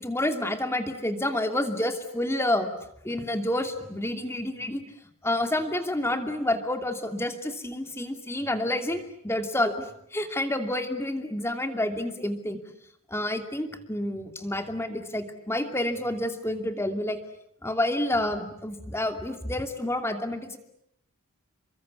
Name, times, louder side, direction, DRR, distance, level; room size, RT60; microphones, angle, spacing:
voice 1, 0.0-2.7 3.0-4.8 5.2-12.6 13.1-17.2 17.6-20.6, left 1 dB, 10° left, 6 dB, 2.7 m, -29 dB
29.0 x 23.5 x 8.5 m, 0.76 s
head